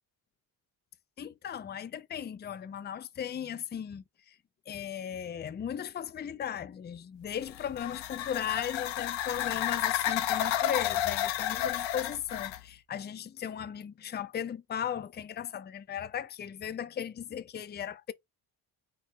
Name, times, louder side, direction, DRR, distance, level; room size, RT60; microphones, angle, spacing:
voice 1, 1.2-4.4 4.7-18.1, left 9 dB, 25° left, 0.4 m, -37 dB
sound 1, 7.3-12.6, left 12 dB, 75° left, 0.7 m, -31 dB
4.5 x 2.2 x 4.3 m
cardioid pair, 75°, 45 cm